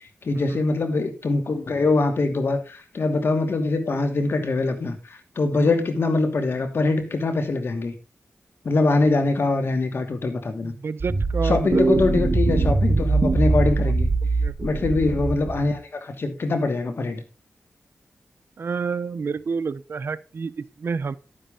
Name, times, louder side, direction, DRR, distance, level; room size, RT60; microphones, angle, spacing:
voice 1, 0.2-7.9 8.6-10.7 11.4-14.1 14.6-17.2, left 3 dB, 65° left, 6 dB, 2.7 m, -23 dB
voice 2, 10.6-11.8 14.4-14.8 18.6-21.2, right 5 dB, 65° right, 16 dB, 0.8 m, -29 dB
sound 1, 11.0-15.7, right 3 dB, 40° right, 2.0 m, -22 dB
11.5 x 9.9 x 3.8 m, 0.29 s
cardioid pair, 60°, 4 cm